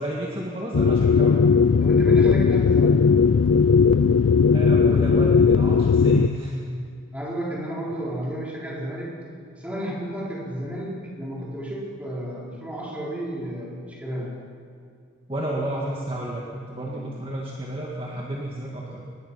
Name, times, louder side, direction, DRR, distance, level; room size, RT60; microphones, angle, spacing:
voice 1, 0.0-1.4 4.5-6.6 7.9-8.0 15.3-19.0, right 1 dB, 25° right, -3 dB, 2.0 m, -31 dB
sound 1, 0.7-6.3, left 5 dB, 90° left, 0.5 m, -17 dB
voice 2, 1.8-3.1 7.1-9.1 9.5-14.4 17.0-17.1, equal, 5° right, -5 dB, 4.7 m, -32 dB
25.0 x 20.0 x 5.7 m, 2.3 s
head